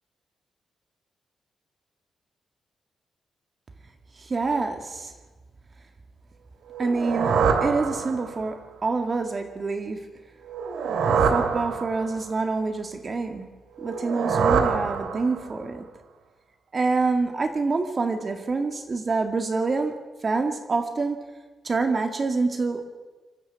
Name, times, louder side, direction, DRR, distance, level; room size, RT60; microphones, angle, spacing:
voice 1, 4.2-5.1 6.8-10.0 11.1-13.5 13.8-15.9 16.7-19.9 20.2-21.2 21.6-22.9, right 3 dB, 35° right, 6 dB, 2.1 m, -26 dB
sound 1, 6.7-8.5 10.5-12.3 13.8-15.6, right 6 dB, 90° right, 2.4 m, -25 dB
25.5 x 13.5 x 8.2 m, 1.3 s
cardioid pair, 120°, 0 cm